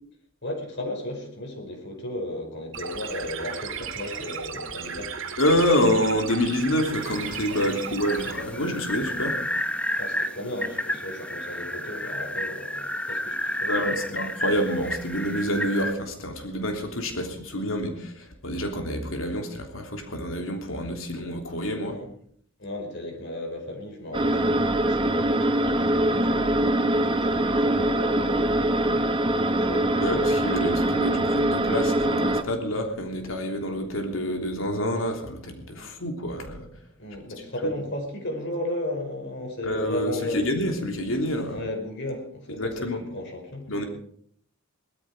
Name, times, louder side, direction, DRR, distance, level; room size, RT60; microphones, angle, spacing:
voice 1, 0.4-5.2 7.6-7.8 9.9-14.2 21.8-22.1 22.6-26.8 27.1-29.9 35.7-35.9 37.0-40.4 41.5-43.7, left 1 dB, 60° left, 3 dB, 5.3 m, -35 dB
sound 1, 2.7-8.3, right 7 dB, 70° right, 2.1 m, -35 dB
voice 2, 5.4-9.4 13.7-22.0 30.0-36.7 39.6-41.6 42.6-43.0 43.7-43.8, equal, 75° left, 3 dB, 3.3 m, -27 dB
sound 2, 7.0-15.9, left 1 dB, 5° left, 1.1 m, -31 dB
sound 3, 24.1-32.4, right 1 dB, 25° right, 1.1 m, -23 dB
19.5 x 13.5 x 5.0 m, 0.62 s
head